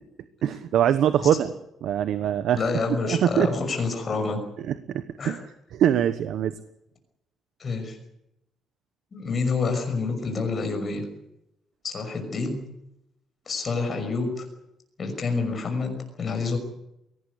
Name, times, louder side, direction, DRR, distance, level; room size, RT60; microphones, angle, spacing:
voice 1, 0.4-1.5 1.8-2.6 3.0-3.5 4.7-5.4 5.7-6.5, right 10 dB, 65° right, 11 dB, 1.0 m, -23 dB
voice 2, 2.6-4.4 5.2-5.4 7.6-8.0 9.1-11.0 11.8-12.6 13.5-14.5 15.0-16.6, left 4 dB, 30° left, 4 dB, 5.9 m, -27 dB
23.0 x 18.0 x 8.3 m, 0.83 s
cardioid pair, 160°, 0 cm